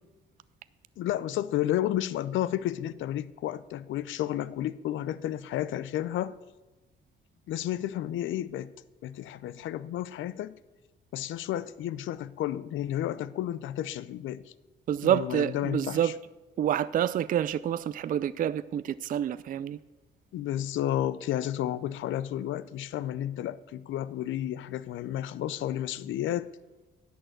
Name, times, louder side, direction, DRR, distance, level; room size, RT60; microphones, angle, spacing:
voice 1, 1.0-6.3 7.5-8.7 9.0-10.6 11.1-14.4 15.0-16.1 20.3-26.5, left 12 dB, 75° left, 0.5 m, -32 dB
voice 2, 14.9-16.2 16.6-19.8, right 10 dB, 45° right, 0.4 m, -28 dB
11.0 x 6.4 x 7.9 m
cardioid pair, 90°, 20 cm